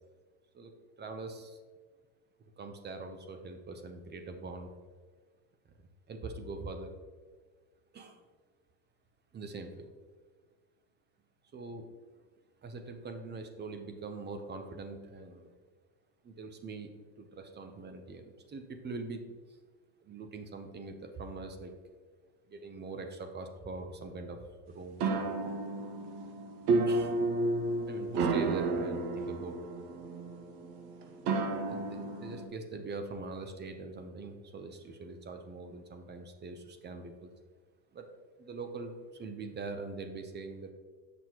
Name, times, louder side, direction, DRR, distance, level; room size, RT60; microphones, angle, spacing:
voice 1, 1.0-1.6 2.6-4.7 6.1-6.9 7.9-8.2 9.3-9.9 11.5-11.9 12.6-15.6 16.2-16.9 17.2-19.2 20.0-21.7 22.5-25.3 26.9-27.2 27.9-29.6 31.7-37.3 37.9-38.1 38.4-40.7, right 3 dB, 20° right, 6 dB, 0.6 m, -43 dB
sound 1, 25.0-32.5, right 3 dB, 50° right, 1.0 m, -32 dB
7.3 x 6.1 x 2.9 m, 1.5 s
supercardioid pair, 100°, 50 cm